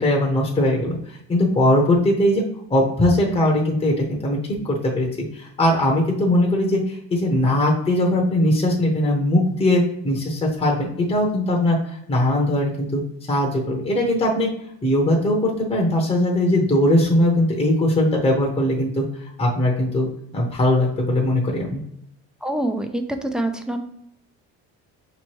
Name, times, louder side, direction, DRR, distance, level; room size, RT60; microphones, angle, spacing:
voice 1, 0.0-2.4 2.7-4.4 4.6-5.1 5.3-13.0 13.3-14.5 14.8-19.0 19.4-20.1 20.3-21.8, left 1 dB, 20° left, -1 dB, 0.8 m, -20 dB
voice 2, 22.4-23.8, right 1 dB, ahead, 6 dB, 0.3 m, -25 dB
5.1 x 3.0 x 3.1 m, 0.71 s
cardioid pair, 115°, 32 cm